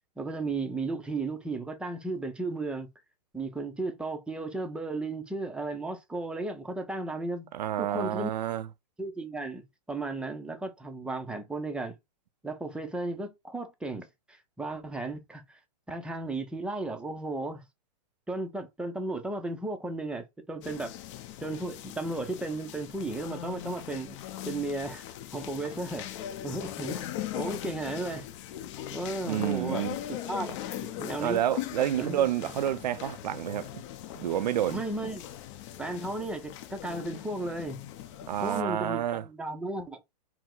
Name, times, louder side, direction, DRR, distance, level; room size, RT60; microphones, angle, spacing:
voice 1, 0.2-2.9 3.3-7.5 7.8-8.3 9.0-9.6 9.9-12.0 12.4-15.6 15.9-17.6 18.3-20.9 21.4-24.2 24.4-25.1 25.3-26.1 26.4-27.0 27.3-28.3 28.9-29.9 30.2-30.6 31.0-31.4 32.0-32.5 34.7-35.2 35.8-37.8 38.4-40.0, right 2 dB, 5° right, 0.5 m, -34 dB
voice 2, 7.5-8.7 29.3-30.0 31.2-33.8 34.2-34.8 38.3-39.2, right 11 dB, 90° right, 0.4 m, -29 dB
sound 1, 20.6-38.6, left 12 dB, 45° left, 0.7 m, -40 dB
4.6 x 2.0 x 3.7 m
hypercardioid pair, 140°, 21 cm